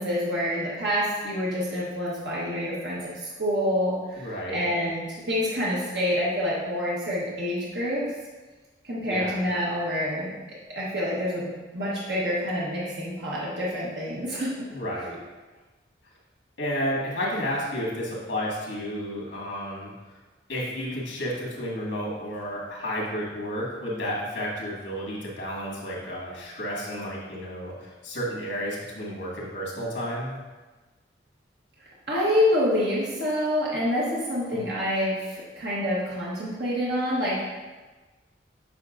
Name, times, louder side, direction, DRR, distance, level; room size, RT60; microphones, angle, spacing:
voice 1, 0.0-8.0 8.8-10.3 10.7-14.5 32.1-37.5, equal, 65° right, -7 dB, 1.3 m, -27 dB
voice 2, 4.2-4.6 9.1-9.4 14.7-15.2 16.6-19.9 20.5-30.4 34.5-34.6, equal, 75° left, -4 dB, 2.0 m, -31 dB
8.2 x 5.2 x 2.6 m, 1.2 s
head